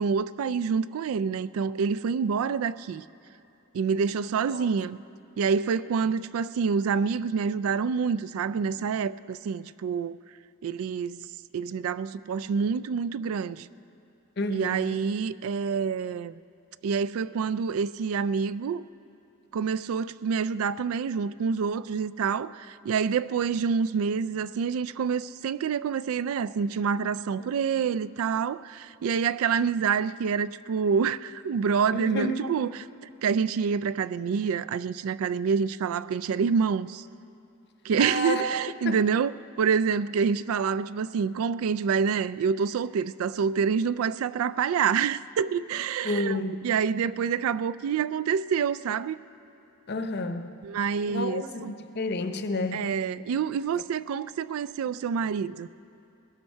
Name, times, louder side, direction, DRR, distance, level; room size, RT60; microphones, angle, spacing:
voice 1, 0.0-3.0 3.7-5.0 5.4-10.2 10.6-11.3 11.5-13.7 14.5-16.3 16.8-18.9 19.5-32.7 33.0-37.1 37.8-39.3 39.6-49.2 50.6-51.7 52.7-55.7, right 6 dB, 75° right, 0.3 m, -27 dB
voice 2, 14.4-15.0 31.9-32.5 38.0-38.4 38.8-39.0 46.0-46.7 49.9-50.6 51.1-52.9, left 2 dB, 50° left, 0.7 m, -30 dB
20.5 x 11.5 x 4.5 m
head